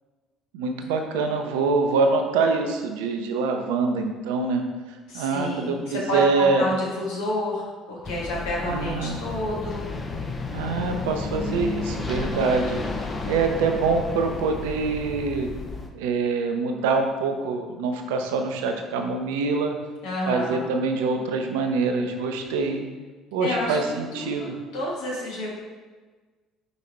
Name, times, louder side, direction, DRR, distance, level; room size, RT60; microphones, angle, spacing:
voice 1, 0.5-4.6 5.1-6.7 8.7-9.2 10.5-12.8 13.2-15.5 15.9-19.7 20.3-22.9 23.3-24.5, right 4 dB, 75° right, 4 dB, 0.6 m, -25 dB
voice 2, 5.1-9.9 20.0-20.6 23.4-23.8 24.1-25.5, left 1 dB, 70° left, -4 dB, 1.7 m, -29 dB
sound 1, 8.0-15.9, left 3 dB, 25° left, 0.8 m, -32 dB
5.3 x 4.0 x 4.3 m, 1.4 s
hypercardioid pair, 60°, 0 cm